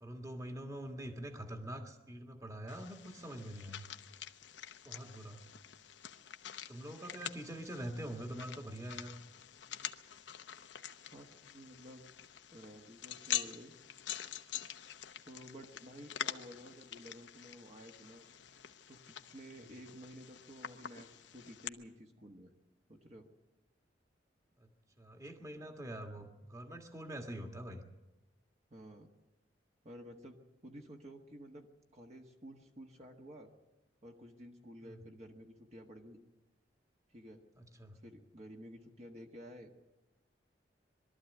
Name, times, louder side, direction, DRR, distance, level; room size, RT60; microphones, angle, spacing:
voice 1, 0.0-3.9 4.8-5.4 6.7-9.2 24.6-24.7 25.0-27.8 34.8-35.0 37.6-38.0, right 1 dB, 20° right, 4 dB, 1.7 m, -45 dB
sound 1, 2.7-21.7, left 10 dB, 75° left, 0.9 m, -46 dB
voice 2, 11.1-12.0 12.5-13.7 15.2-18.3 18.9-22.5 22.9-23.3 28.7-29.1 29.8-33.5 34.0-36.2 37.1-37.4 38.0-39.7, equal, 35° right, 2 dB, 1.5 m, -52 dB
22.0 x 13.0 x 9.2 m, 1.0 s
head